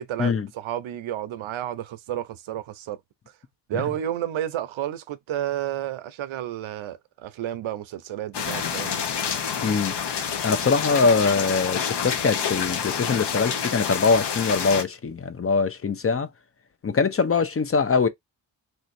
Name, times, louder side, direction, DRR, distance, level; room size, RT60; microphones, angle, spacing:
voice 1, 0.0-3.0 3.7-9.0, right 11 dB, 85° right, 0.7 m, -31 dB
sound 1, 8.3-14.8, left 7 dB, 60° left, 0.8 m, -28 dB
voice 2, 9.6-10.0 10.4-16.3 16.8-18.1, left 4 dB, 30° left, 0.6 m, -22 dB
3.3 x 2.8 x 2.6 m
cardioid pair, 80°, 46 cm